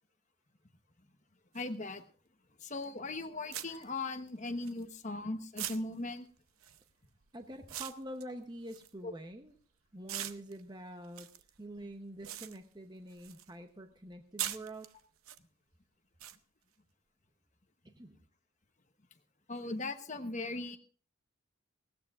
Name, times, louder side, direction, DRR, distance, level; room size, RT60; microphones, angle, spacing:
voice 1, 1.5-2.0 2.6-6.3 9.0-9.1 19.5-20.8, left 2 dB, 35° left, 7 dB, 1.1 m, -38 dB
sound 1, 1.5-1.6 2.8-3.0 3.5-5.2 5.6-9.6 10.0-13.5 13.8-15.4 16.2-16.4, right 12 dB, 85° right, 0.7 m, -43 dB
voice 2, 7.3-9.5 9.9-11.3 11.6-14.9 17.8-18.2, right 1 dB, 20° right, 6 dB, 0.8 m, -46 dB
19.5 x 17.0 x 2.5 m, 0.40 s
head